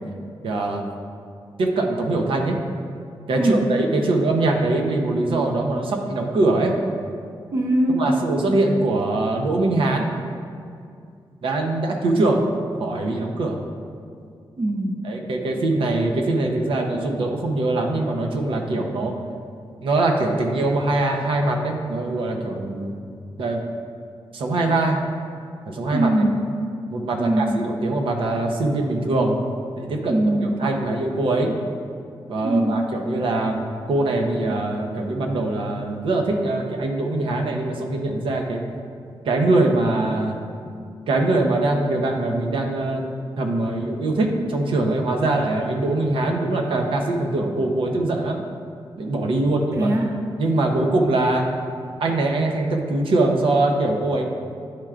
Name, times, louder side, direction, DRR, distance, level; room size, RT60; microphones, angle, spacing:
voice 1, 0.4-0.9 1.6-2.6 3.3-6.7 7.9-10.1 11.4-12.4 12.8-13.6 15.0-19.2 19.8-23.0 23.4-23.6 24.3-25.0 25.6-26.1 26.9-29.5 29.8-31.6 32.3-38.6 39.2-40.4 41.1-43.0 43.4-48.4 49.0-49.9 50.4-51.5 52.0-54.2, right 2 dB, 85° right, 2 dB, 0.7 m, -22 dB
voice 2, 7.5-8.2 14.6-15.1 25.9-26.4 27.2-27.7 30.1-30.6 32.4-32.8 49.7-50.2, right 1 dB, 35° right, 2 dB, 0.5 m, -21 dB
10.5 x 4.4 x 2.4 m, 2.4 s
wide cardioid pair, 180°, 9 cm